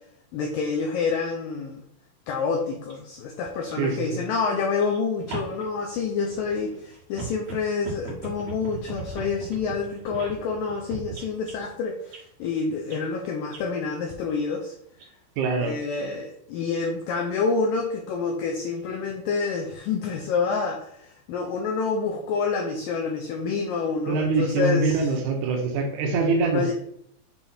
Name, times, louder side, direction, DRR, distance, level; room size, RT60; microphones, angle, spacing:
voice 1, 0.3-1.8 2.3-14.8 15.6-25.1 26.5-26.7, left 4 dB, 80° left, 1 dB, 2.1 m, -28 dB
sound 1, 2.9-3.0 3.6-3.7 4.7-11.5 12.1-12.2 12.9-13.0 13.5-13.8 14.9-15.0 15.6-15.7, right 6 dB, 50° right, 2.4 m, -39 dB
voice 2, 3.8-4.2 15.4-15.8 24.1-26.7, right 3 dB, 75° right, 1 dB, 1.8 m, -24 dB
7.2 x 3.6 x 4.3 m, 0.71 s
omnidirectional pair, 4.7 m